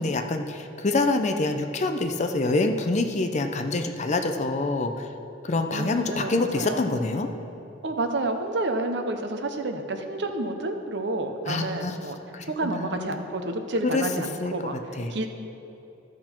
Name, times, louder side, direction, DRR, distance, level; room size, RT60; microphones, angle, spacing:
voice 1, 0.0-5.1 5.4-7.3 11.5-12.0 12.3-13.0 13.9-14.0 14.4-14.5 15.0-15.3, left 2 dB, 40° left, 6 dB, 0.6 m, -26 dB
voice 2, 5.7-7.0 7.8-12.2 12.5-15.3, right 2 dB, 65° right, 6 dB, 0.8 m, -30 dB
13.5 x 6.0 x 4.4 m, 3.0 s
head